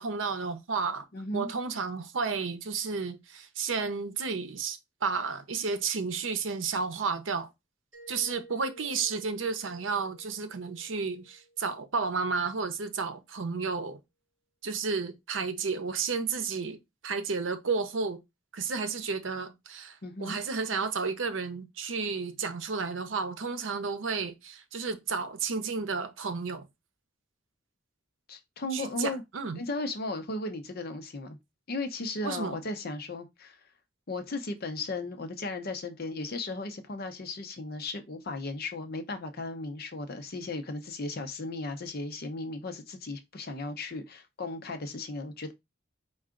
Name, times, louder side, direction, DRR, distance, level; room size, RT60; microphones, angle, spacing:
voice 1, 0.0-1.1 1.3-7.5 8.1-14.0 14.6-16.8 17.0-18.2 18.5-26.7 28.7-29.6 32.2-32.6, right 5 dB, 75° right, 0.7 m, -32 dB
voice 2, 1.1-1.5 20.0-20.4 28.3-29.2 29.5-31.4 31.7-33.6 34.1-45.5, left 2 dB, 55° left, 0.7 m, -36 dB
Mallet percussion, 7.9-12.5, right 1 dB, 10° right, 1.9 m, -55 dB
4.6 x 2.3 x 3.7 m
head